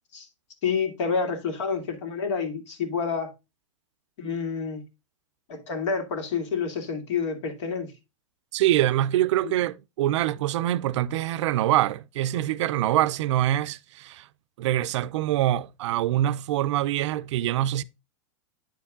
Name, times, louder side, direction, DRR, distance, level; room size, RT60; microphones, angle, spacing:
voice 1, 0.6-3.3 4.2-4.8 5.5-7.9 9.4-9.5, left 5 dB, 65° left, 2.4 m, -28 dB
voice 2, 8.5-14.2 14.6-17.8, right 13 dB, 65° right, 0.5 m, -24 dB
9.2 x 4.6 x 3.6 m
hypercardioid pair, 135°, 16 cm